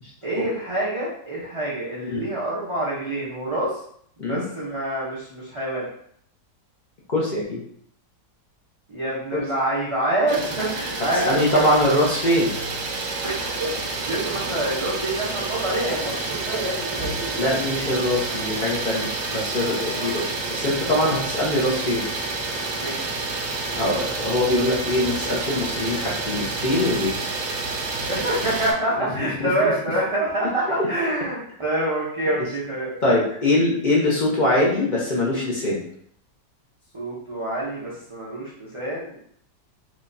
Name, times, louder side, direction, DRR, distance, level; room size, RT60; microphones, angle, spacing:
voice 1, 0.2-3.8 4.2-5.9 8.9-11.7 13.2-13.7 14.1-17.4 19.9-20.1 22.8-23.0 28.1-32.9 36.9-39.2, right 1 dB, 35° right, -8 dB, 0.5 m, -26 dB
voice 2, 7.1-7.6 9.3-9.4 11.2-12.5 17.4-22.1 23.7-27.1 29.1-29.5 32.4-32.5 33.0-35.8, left 1 dB, 45° left, -5 dB, 0.6 m, -23 dB
Idling, 10.3-28.7, right 3 dB, 90° right, 1.4 m, -29 dB
4.8 x 2.4 x 2.6 m, 0.65 s
omnidirectional pair, 1.9 m